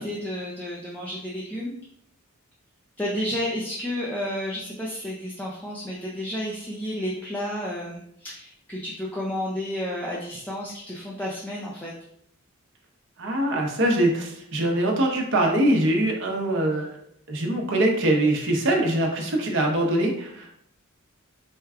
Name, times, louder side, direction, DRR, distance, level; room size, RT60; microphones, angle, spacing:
voice 1, 0.0-1.7 3.0-11.9, left 1 dB, 5° left, -5 dB, 0.5 m, -31 dB
voice 2, 13.2-16.9 17.3-20.5, right 1 dB, 65° right, 0 dB, 0.9 m, -23 dB
4.4 x 2.2 x 3.5 m, 0.71 s
head